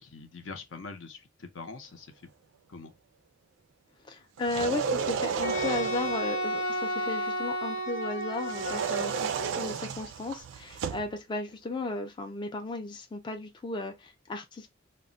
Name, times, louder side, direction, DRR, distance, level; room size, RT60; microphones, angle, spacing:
voice 1, 0.0-2.1 2.7-2.9, left 4 dB, 75° left, 0.6 m, -43 dB
voice 2, 4.1-14.7, left 2 dB, 25° left, 0.3 m, -35 dB
sound 1, 4.4-6.2 8.4-11.1, right 6 dB, 70° right, 0.3 m, -32 dB
Wind instrument woodwind instrument, 5.4-9.7, equal, 90° left, 1.2 m, -32 dB
2.1 x 2.1 x 3.7 m
head